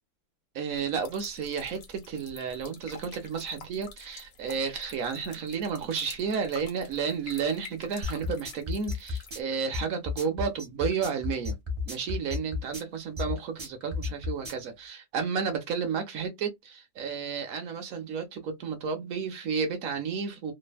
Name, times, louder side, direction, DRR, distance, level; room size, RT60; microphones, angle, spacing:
voice 1, 0.5-11.6 11.9-20.5, right 6 dB, 65° right, 0.8 m, -32 dB
sound 1, 0.7-9.4, left 5 dB, 60° left, 1.0 m, -49 dB
sound 2, 8.0-14.7, left 4 dB, 40° right, 0.4 m, -32 dB
3.3 x 2.1 x 2.2 m
omnidirectional pair, 2.1 m